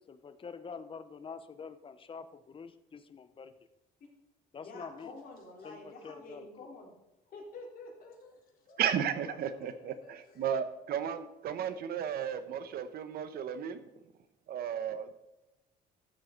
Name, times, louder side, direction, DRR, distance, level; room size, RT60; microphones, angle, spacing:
voice 1, 0.1-3.5 4.5-5.1 5.6-6.5, left 5 dB, 30° left, 11 dB, 0.9 m, -46 dB
voice 2, 4.5-6.9 7.3-10.4, left 2 dB, 60° left, -1 dB, 3.8 m, -49 dB
voice 3, 8.8-13.8 14.5-15.1, right 8 dB, 65° right, 11 dB, 1.1 m, -34 dB
13.0 x 7.7 x 4.0 m, 0.98 s
cardioid pair, 110°, 17 cm